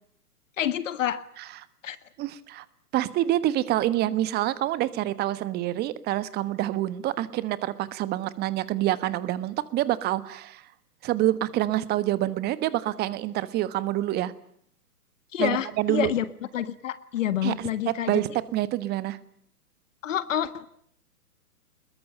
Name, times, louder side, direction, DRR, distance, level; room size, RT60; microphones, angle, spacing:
voice 1, 0.6-1.3 1.8-2.0 15.3-16.2 16.5-18.1 20.0-20.7, left 10 dB, 55° left, 14 dB, 1.6 m, -28 dB
voice 2, 2.2-2.6 2.9-10.6 11.0-14.3 15.4-16.1 17.4-19.2, right 14 dB, 20° right, 16 dB, 1.3 m, -27 dB
24.0 x 21.5 x 9.0 m, 0.65 s
figure-of-eight pair, 120°, 46 cm